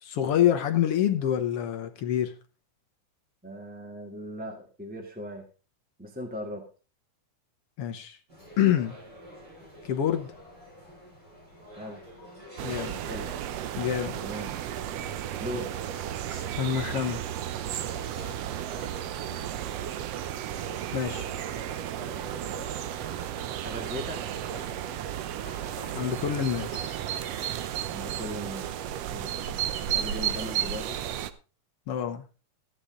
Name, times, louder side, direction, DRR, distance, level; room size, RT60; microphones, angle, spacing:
voice 1, 0.0-2.3 7.8-8.2 8.6-8.9 9.8-10.3 12.6-13.0 13.8-14.2 16.3-17.2 20.9-21.3 25.9-27.0 31.9-32.2, left 10 dB, 70° left, 1.5 m, -27 dB
voice 2, 3.4-5.4 6.0-6.7 11.8-12.0 13.0-13.3 14.2-14.6 15.4-15.7 23.6-24.4 27.9-28.7 29.1-29.4 29.9-31.0, equal, 5° right, 1.0 m, -38 dB
sound 1, 8.3-27.6, left 1 dB, 30° right, 7.5 m, -48 dB
sound 2, 12.6-31.3, right 11 dB, 75° right, 1.5 m, -33 dB
14.0 x 10.0 x 3.8 m
omnidirectional pair, 3.7 m